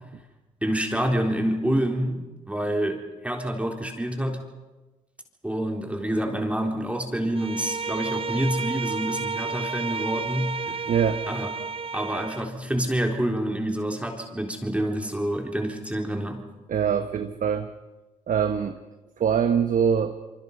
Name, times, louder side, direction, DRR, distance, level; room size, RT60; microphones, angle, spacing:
voice 1, 0.6-4.4 5.4-10.8 11.3-11.5 11.9-16.4, right 1 dB, 10° right, 2 dB, 3.8 m, -27 dB
Bowed string instrument, 7.3-12.5, right 4 dB, 40° right, 0.8 m, -31 dB
voice 2, 10.9-11.2 16.7-17.7 18.3-18.8 19.2-20.1, right 7 dB, 65° right, 8 dB, 1.2 m, -23 dB
27.0 x 24.0 x 5.5 m, 1.1 s
supercardioid pair, 65°, 15 cm